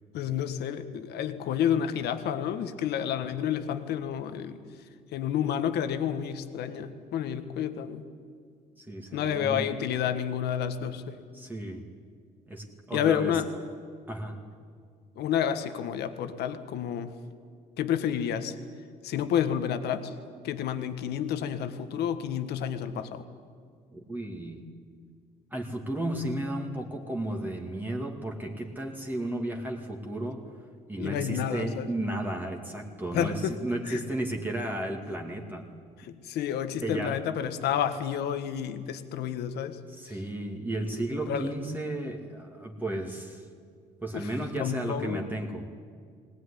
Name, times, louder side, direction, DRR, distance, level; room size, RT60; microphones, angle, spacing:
voice 1, 0.1-4.6 5.1-8.0 9.1-11.2 12.9-13.5 15.2-17.1 17.8-18.6 19.0-20.1 20.4-23.2 31.0-31.9 33.1-33.6 33.9-34.0 36.0-39.8 41.3-41.5 44.1-44.3 44.6-45.3, left 9 dB, 75° left, 9 dB, 1.6 m, -30 dB
voice 2, 8.8-9.7 11.3-11.9 12.5-13.4 14.1-14.4 23.9-24.7 25.5-30.4 30.9-35.7 36.8-37.2 39.9-43.5 44.0-45.7, right 1 dB, 10° right, 1 dB, 2.3 m, -34 dB
19.5 x 19.0 x 10.0 m, 2.1 s
cardioid pair, 110°, 17 cm